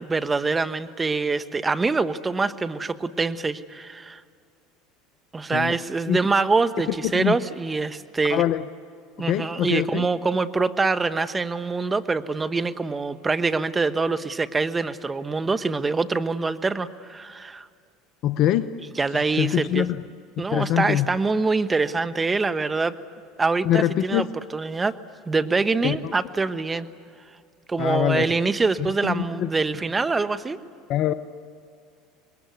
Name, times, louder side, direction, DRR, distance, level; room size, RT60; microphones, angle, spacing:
voice 1, 0.0-4.2 5.3-8.5 9.2-17.7 19.0-19.9 20.4-23.0 23.4-24.3 24.5-25.0 25.3-26.9 27.7-30.6, right 4 dB, 20° right, 12 dB, 1.1 m, -24 dB
voice 2, 7.0-7.4 8.3-8.7 9.2-10.0 18.2-18.7 19.1-20.0 20.4-21.1 23.6-24.3 25.8-26.1 27.8-28.3 28.8-29.5 30.9-31.1, left 12 dB, 55° left, 12 dB, 0.8 m, -24 dB
26.5 x 21.5 x 9.5 m, 2.3 s
hypercardioid pair, 85°, 0 cm